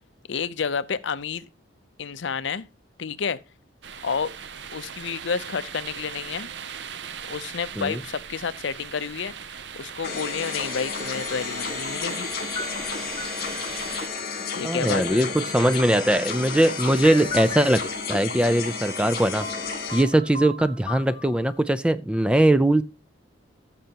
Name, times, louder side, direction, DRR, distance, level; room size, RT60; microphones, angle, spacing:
voice 1, 0.3-1.5 2.0-2.6 3.0-3.4 4.0-4.3 4.7-6.5 7.3-9.3 9.8-12.3 14.5-15.3, left 6 dB, 65° left, 0.6 m, -30 dB
sound 1, 3.8-14.1, right 7 dB, 60° right, 0.6 m, -39 dB
sound 2, 10.0-20.0, left 5 dB, 50° left, 2.3 m, -32 dB
sound 3, 12.5-14.3 14.6-18.2 19.1-19.2 19.4-21.5, left 2 dB, 30° left, 1.5 m, -38 dB
voice 2, 14.6-17.8 18.1-22.8, right 1 dB, 5° right, 0.4 m, -21 dB
14.5 x 6.7 x 2.9 m
head